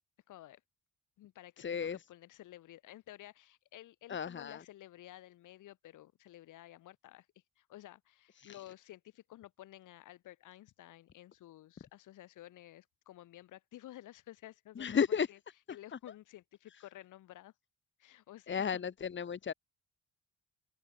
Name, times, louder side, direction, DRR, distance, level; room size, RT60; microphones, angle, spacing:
voice 1, 0.3-0.6 1.2-7.3 7.6-15.4 15.7-17.5 18.0-18.8, left 14 dB, 85° left, 4.5 m, -53 dB
voice 2, 1.6-2.0 4.1-4.6 14.8-15.3 18.5-19.5, left 7 dB, 40° left, 1.5 m, -33 dB
cardioid pair, 90°, 30 cm